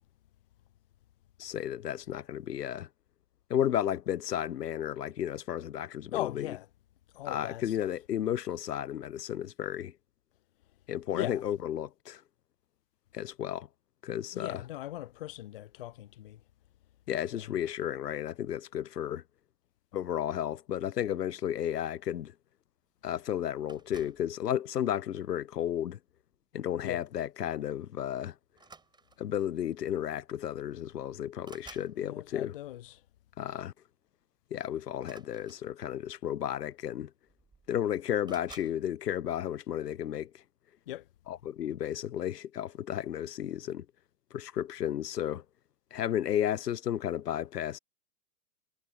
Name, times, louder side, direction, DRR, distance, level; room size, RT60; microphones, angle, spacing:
voice 1, 1.4-2.9 3.5-6.5 7.3-9.9 10.9-12.2 13.1-13.7 14.0-14.6 17.1-19.2 19.9-22.3 23.0-26.0 26.5-28.3 29.2-32.5 33.4-33.7 34.5-37.1 37.7-40.3 41.3-43.9 44.3-45.4 45.9-47.8, left 10 dB, 85° left, 0.6 m, -33 dB
voice 2, 6.1-6.7 7.1-7.9 11.1-11.4 14.3-16.4 17.3-17.5 26.8-27.0 32.0-33.0 40.9-41.1, left 14 dB, 40° left, 0.4 m, -39 dB
sound 1, 23.7-24.3 25.2-25.5 27.0-27.2 27.5-27.6 28.5-29.4 30.4-30.5 30.8-32.0 34.9-36.0 36.9-37.0 37.3-37.8 38.2-38.8, right 4 dB, 10° right, 6.4 m, -54 dB
figure-of-eight pair, 115°, 46 cm